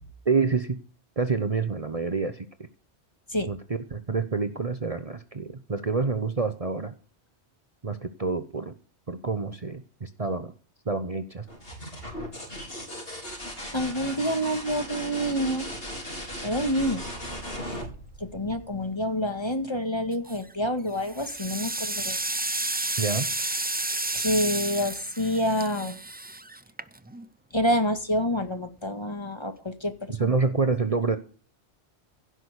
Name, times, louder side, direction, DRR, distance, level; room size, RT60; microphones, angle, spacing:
voice 1, 0.2-0.8 1.2-2.7 3.5-6.9 7.8-8.7 9.1-10.5 10.9-11.5 23.0-23.3 30.1-31.2, right 4 dB, 35° right, 9 dB, 1.0 m, -27 dB
sound 1, 11.5-19.1 20.8-21.4, equal, 60° left, 4.6 m, -37 dB
voice 2, 13.7-15.7 16.4-17.0 17.6-17.8 18.2-22.2 24.1-26.0 27.5-30.3, equal, 25° left, 7 dB, 1.9 m, -27 dB
sound 2, 20.1-20.5 21.0-27.3, right 2 dB, 15° right, 0.3 m, -31 dB
16.5 x 6.2 x 8.0 m, 0.41 s
omnidirectional pair, 1.1 m